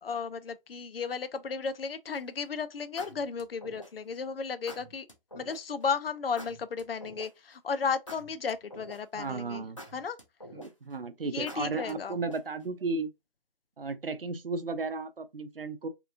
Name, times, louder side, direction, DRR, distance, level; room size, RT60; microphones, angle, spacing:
voice 1, 0.0-5.1 5.3-9.6 9.9-10.2 11.2-12.2, left 5 dB, 80° left, 0.5 m, -34 dB
sound 1, 2.1-2.4 3.0-4.1 4.7-5.6 6.4-7.5 8.1-9.2 9.8-10.9 11.5-12.6, equal, 35° left, 0.6 m, -46 dB
voice 2, 9.1-9.8 10.5-13.1 13.8-15.9, right 3 dB, 75° right, 0.6 m, -34 dB
2.9 x 2.5 x 2.3 m
figure-of-eight pair, 175°, 29 cm